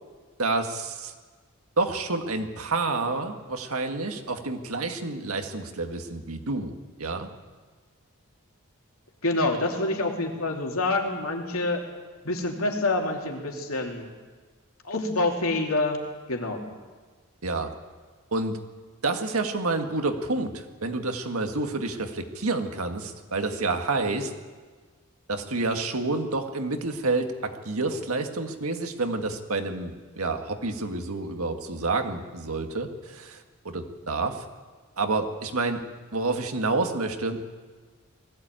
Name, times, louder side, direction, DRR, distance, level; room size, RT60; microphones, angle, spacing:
voice 1, 0.4-1.1 1.8-6.7 7.0-7.3 17.4-17.7 18.3-18.6 19.0-24.3 25.3-34.5 35.0-35.8 36.1-37.5, right 3 dB, 80° right, 5 dB, 1.9 m, -29 dB
voice 2, 9.2-11.8 12.2-14.1 14.8-16.0 16.3-16.6, left 2 dB, 75° left, 1 dB, 3.0 m, -27 dB
19.5 x 15.5 x 9.0 m, 1.4 s
head